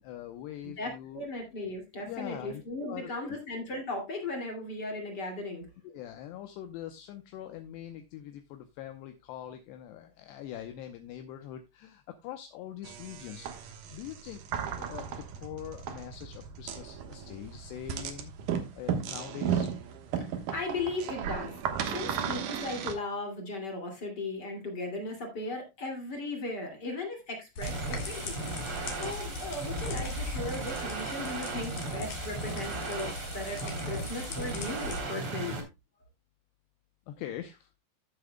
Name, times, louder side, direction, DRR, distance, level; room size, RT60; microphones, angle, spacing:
voice 1, 0.0-1.3 2.1-2.6 2.9-3.4 5.8-18.3 18.7-19.7 22.0-22.3 37.1-37.7, left 11 dB, 80° left, 7 dB, 2.6 m, -43 dB
voice 2, 0.8-5.7 20.2-21.6 21.9-28.4 28.7-35.6, left 2 dB, 35° left, 2 dB, 1.9 m, -37 dB
sound 1, 12.8-22.9, right 8 dB, 85° right, 1.8 m, -35 dB
sound 2, 27.6-35.0, left 2 dB, 50° left, 2.6 m, -39 dB
sound 3, 27.6-35.6, right 3 dB, 35° right, 3.0 m, -37 dB
14.5 x 7.5 x 2.2 m, 0.24 s
omnidirectional pair, 5.6 m